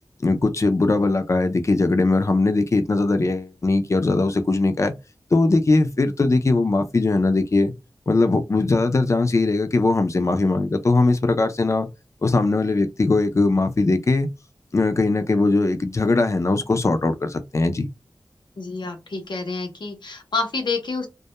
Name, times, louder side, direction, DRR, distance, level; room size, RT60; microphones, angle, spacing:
voice 1, 0.2-4.9 5.3-7.7 8.1-11.9 12.2-14.3 14.7-17.9, left 3 dB, 40° left, 0.4 m, -20 dB
voice 2, 18.6-21.1, left 3 dB, 85° left, 0.7 m, -28 dB
2.2 x 2.1 x 2.8 m
wide cardioid pair, 80°, 8 cm